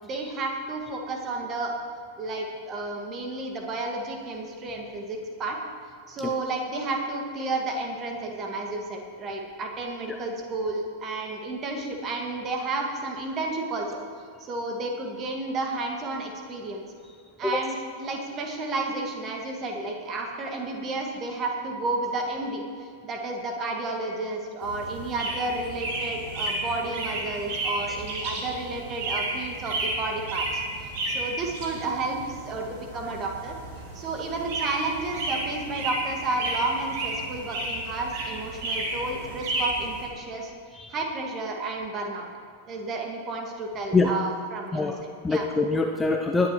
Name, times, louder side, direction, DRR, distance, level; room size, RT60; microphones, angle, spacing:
voice 1, 0.0-1.7 2.2-5.6 6.1-14.0 14.4-16.8 17.4-22.7 23.0-33.6 33.9-40.5 40.9-42.3 42.7-44.9 45.3-45.5, right 2 dB, 30° right, 2 dB, 1.9 m, -31 dB
sound 1, 24.6-40.1, right 2 dB, 50° right, 2.5 m, -32 dB
voice 2, 44.7-46.5, left 3 dB, 10° left, 3 dB, 0.6 m, -25 dB
20.0 x 10.0 x 3.1 m, 2.2 s
figure-of-eight pair, 90°, 0 cm